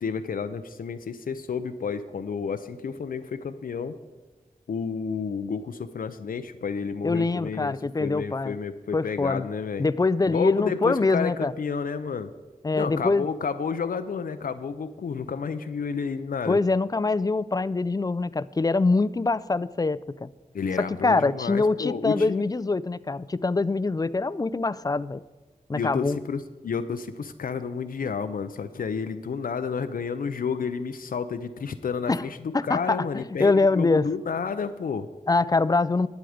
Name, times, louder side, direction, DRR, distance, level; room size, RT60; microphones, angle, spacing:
voice 1, 0.0-4.0 4.7-9.9 10.3-12.3 12.7-16.6 20.5-22.4 25.7-35.1, left 6 dB, 80° left, 9 dB, 0.5 m, -31 dB
voice 2, 7.0-8.6 8.9-9.5 9.8-11.5 12.6-13.3 16.5-20.3 20.8-25.2 25.7-26.2 32.1-32.2 32.5-34.1 35.3-36.1, left 3 dB, 25° left, 18 dB, 0.4 m, -24 dB
11.5 x 9.1 x 5.0 m, 1.3 s
cardioid pair, 45°, 15 cm